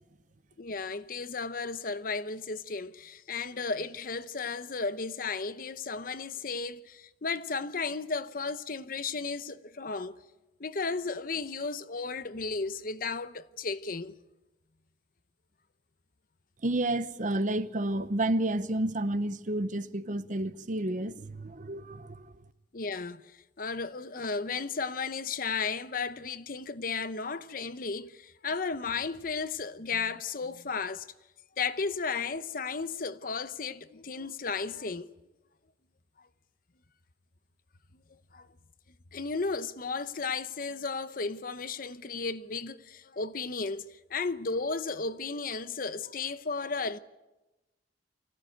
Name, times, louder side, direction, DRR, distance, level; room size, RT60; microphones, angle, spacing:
voice 1, 0.6-10.1 10.6-14.1 22.7-23.2 23.6-31.1 31.6-35.1 38.3-38.5 39.1-47.0, left 4 dB, 50° left, 0.8 m, -34 dB
voice 2, 16.6-22.3, right 1 dB, 45° right, 0.8 m, -30 dB
24.5 x 16.5 x 9.2 m
head